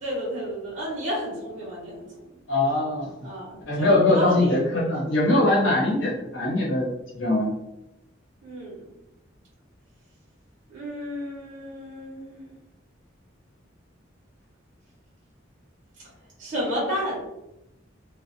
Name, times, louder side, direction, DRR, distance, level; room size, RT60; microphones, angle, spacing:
voice 1, 0.0-2.3 3.2-4.6 8.4-8.9 10.7-12.5 16.4-17.2, equal, 40° right, -5 dB, 0.9 m, -31 dB
voice 2, 2.5-3.1 3.7-7.5, left 2 dB, 90° left, -4 dB, 0.9 m, -22 dB
2.5 x 2.0 x 2.7 m, 0.91 s
head